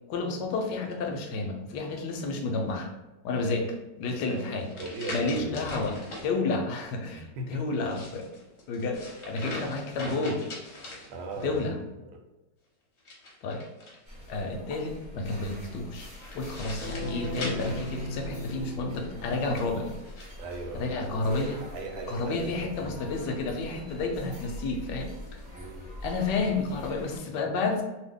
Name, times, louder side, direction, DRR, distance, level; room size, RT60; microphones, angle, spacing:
voice 1, 0.1-2.9 3.2-4.7 5.1-8.3 8.7-10.4 11.4-11.8 13.4-13.6 14.3-16.1 16.3-20.0 20.7-21.6 22.1-25.4 26.0-27.8, left 3 dB, 75° left, 3 dB, 1.1 m, -31 dB
sound 1, 4.3-6.3 7.7-11.6 13.0-14.3 16.1-18.6 19.3-20.3, left 1 dB, 50° left, 0.9 m, -42 dB
voice 2, 4.3-5.7 7.3-7.8 8.1-8.2 11.1-12.2 20.4-22.9 25.5-25.9, right 2 dB, 80° right, 3 dB, 1.3 m, -39 dB
sound 2, 14.1-27.2, left 1 dB, 20° right, 0.8 m, -44 dB
sound 3, 16.8-19.9, left 1 dB, 60° right, 1.1 m, -37 dB
2.7 x 2.6 x 3.5 m, 1.1 s
omnidirectional pair, 2.0 m